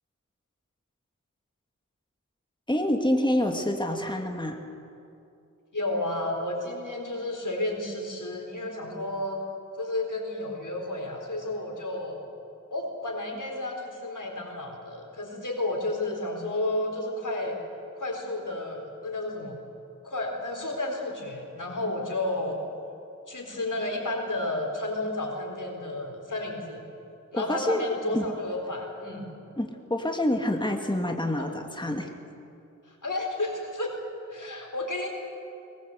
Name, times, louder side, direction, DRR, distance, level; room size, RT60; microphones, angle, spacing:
voice 1, 2.7-4.6 27.3-27.8 28.1-28.3 29.6-32.1, left 1 dB, 15° left, 3 dB, 2.1 m, -27 dB
voice 2, 5.7-9.4 9.8-12.2 12.7-17.6 18.0-19.6 20.0-22.6 23.3-26.9 27.3-29.3 31.0-31.5 32.9-33.9 34.3-35.1, left 2 dB, 85° left, 1 dB, 4.2 m, -32 dB
21.5 x 20.0 x 8.1 m, 2.6 s
wide cardioid pair, 40°, 30 cm